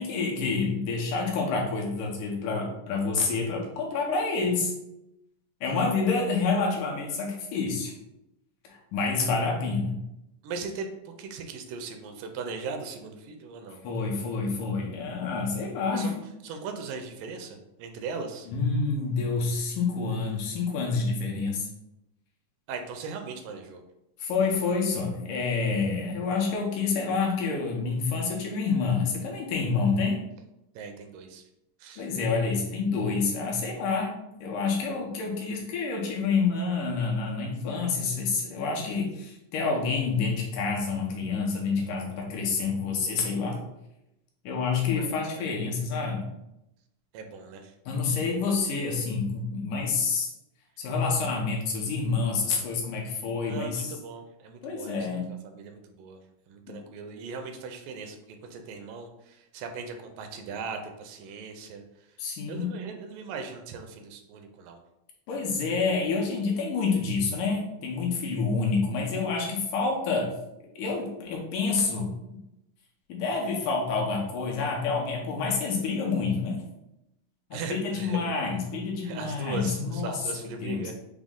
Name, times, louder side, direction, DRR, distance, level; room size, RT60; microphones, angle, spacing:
voice 1, 0.0-4.7 5.6-7.9 8.6-10.0 13.8-16.1 18.5-21.7 24.2-30.2 32.0-43.6 44.4-46.3 47.9-50.3 50.8-54.0 54.6-55.3 56.7-56.8 62.2-62.8 65.3-70.4 70.8-72.2 73.1-76.6 77.5-80.8, left 4 dB, 80° left, -1 dB, 2.2 m, -28 dB
voice 2, 10.4-13.8 15.9-16.2 16.4-18.5 22.7-23.8 30.8-31.4 31.8-32.1 45.0-45.1 47.1-47.7 53.4-56.2 56.5-61.8 62.5-64.8 77.5-78.3 79.0-80.9, right 4 dB, 85° right, 5 dB, 2.2 m, -39 dB
6.0 x 2.0 x 3.6 m, 0.87 s
omnidirectional pair, 3.8 m